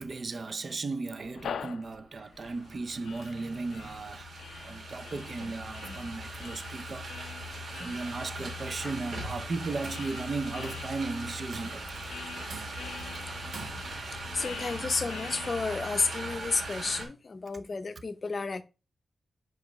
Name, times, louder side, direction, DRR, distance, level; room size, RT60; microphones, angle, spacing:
voice 1, 0.0-4.3 4.6-7.1 7.7-11.9, right 3 dB, 40° right, 0.5 m, -36 dB
sound 1, 1.1-10.9 11.5-16.0, left 8 dB, 80° left, 0.3 m, -46 dB
sound 2, 2.4-17.0, right 1 dB, 60° right, 2.4 m, -40 dB
Tools, 9.8-10.1 10.6-11.0 11.5-12.0 12.5-13.0 13.5-14.1, right 4 dB, 75° right, 1.5 m, -46 dB
voice 2, 14.3-18.6, left 4 dB, 35° left, 0.6 m, -31 dB
5.0 x 4.7 x 5.1 m
wide cardioid pair, 140°, 0 cm